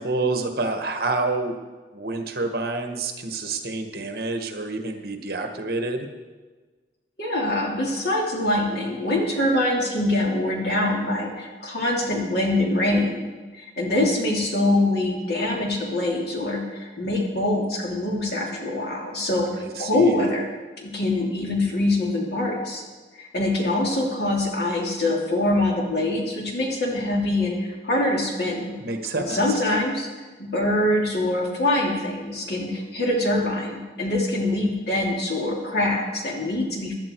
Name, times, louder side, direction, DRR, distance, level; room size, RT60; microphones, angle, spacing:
voice 1, 0.0-1.6 1.9-6.1 19.5-20.3 28.8-29.4, right 2 dB, 55° right, 5 dB, 1.4 m, -28 dB
voice 2, 7.2-13.2 13.6-20.5 20.8-22.8 23.2-28.7 29.2-30.1 30.4-36.9, left 1 dB, 60° left, -1 dB, 3.1 m, -24 dB
16.0 x 11.5 x 4.6 m, 1.3 s
head